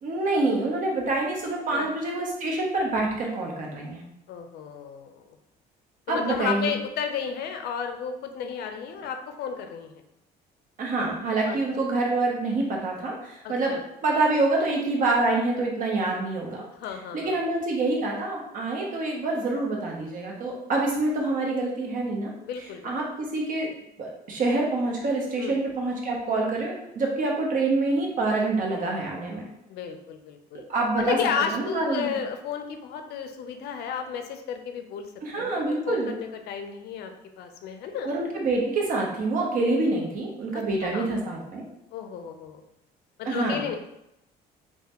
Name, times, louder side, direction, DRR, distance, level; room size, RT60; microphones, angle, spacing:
voice 1, 0.0-4.0 6.1-6.7 10.8-13.7 14.0-16.6 17.1-22.3 22.8-23.7 24.0-29.5 30.7-31.2 31.5-32.1 35.2-36.1 38.0-41.6 43.2-43.7, right 2 dB, 55° right, -1 dB, 0.8 m, -26 dB
voice 2, 4.3-5.2 6.1-10.0 11.5-11.6 13.4-13.8 16.7-17.4 22.4-23.0 25.4-25.5 29.7-30.6 31.0-35.1 35.4-37.1 37.4-38.1 40.5-41.1 41.9-42.6 43.2-43.8, left 7 dB, 70° left, 6 dB, 0.4 m, -33 dB
3.1 x 2.2 x 2.9 m, 0.84 s
cardioid pair, 110°, 17 cm